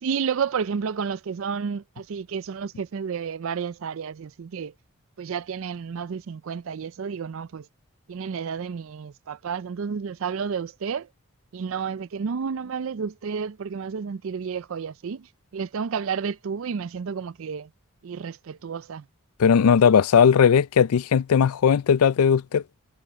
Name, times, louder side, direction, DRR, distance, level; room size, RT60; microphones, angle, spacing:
voice 1, 0.0-4.7 5.2-7.7 8.1-11.1 11.5-17.7 18.0-19.0, right 6 dB, 65° right, 0.4 m, -31 dB
voice 2, 19.4-22.6, left 7 dB, 80° left, 0.4 m, -18 dB
head